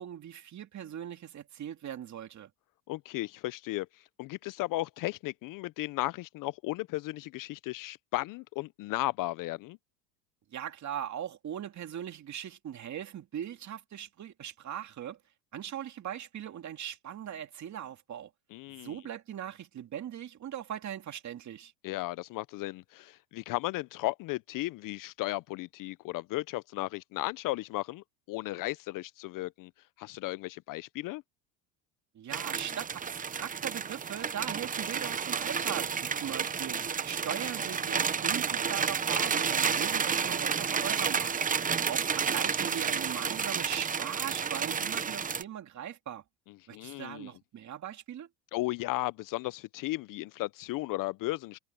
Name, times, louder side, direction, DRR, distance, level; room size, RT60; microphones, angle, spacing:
voice 1, 0.0-2.5 10.5-15.2 15.5-18.3 18.8-21.7 32.1-41.3 41.9-46.2 46.7-48.3, right 10 dB, 40° right, 2.6 m, -40 dB
voice 2, 2.9-9.8 18.5-19.0 21.8-29.7 30.0-31.2 46.7-47.3 48.5-51.6, left 19 dB, 45° left, 0.5 m, -35 dB
sound 1, 32.3-45.4, right 6 dB, 20° right, 0.8 m, -31 dB
supercardioid pair, 110°, 45 cm